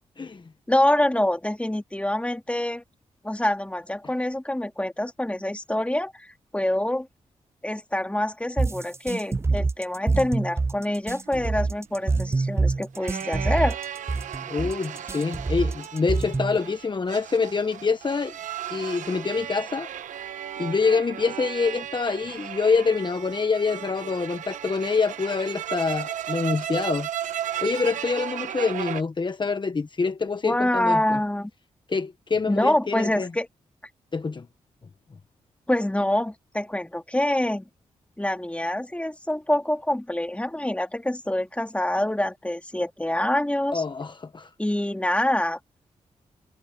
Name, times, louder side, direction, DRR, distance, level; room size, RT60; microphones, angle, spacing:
voice 1, 0.7-2.8 3.2-6.3 6.5-7.1 7.6-13.8 30.4-31.5 32.5-33.5 35.7-37.6 38.2-43.8 44.6-45.6, left 1 dB, 10° left, 3.0 m, -25 dB
sound 1, 8.6-16.6, right 3 dB, 20° right, 0.4 m, -26 dB
sound 2, 11.3-29.0, right 10 dB, 85° right, 1.0 m, -35 dB
voice 2, 14.5-18.3 18.7-19.9 20.6-27.1 27.6-31.2 31.9-33.3 34.1-34.5 43.7-44.5, left 4 dB, 40° left, 1.2 m, -26 dB
cardioid pair, 55°, 13 cm